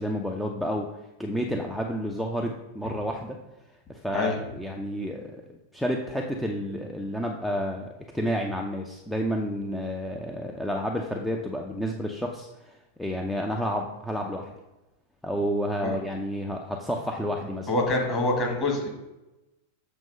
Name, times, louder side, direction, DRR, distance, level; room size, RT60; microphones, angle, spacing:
voice 1, 0.0-3.4 3.9-7.9 8.1-14.5 15.2-17.7, equal, 5° left, 1 dB, 0.6 m, -30 dB
voice 2, 17.7-18.9, left 2 dB, 30° left, -1 dB, 1.8 m, -25 dB
7.1 x 3.0 x 5.3 m, 1.0 s
figure-of-eight pair, 90°, 0 cm